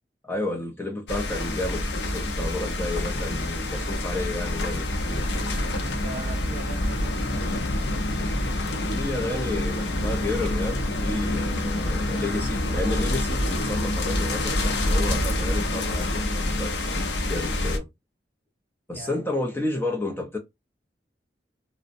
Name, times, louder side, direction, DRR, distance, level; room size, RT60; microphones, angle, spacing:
voice 1, 0.2-5.3 8.9-17.9 18.9-20.4, left 2 dB, 15° left, 0.5 m, -31 dB
sound 1, 1.1-17.8, left 1 dB, 75° left, 0.6 m, -27 dB
voice 2, 5.7-7.7 18.9-19.2, right 2 dB, 45° right, 0.4 m, -40 dB
2.6 x 2.0 x 2.5 m
head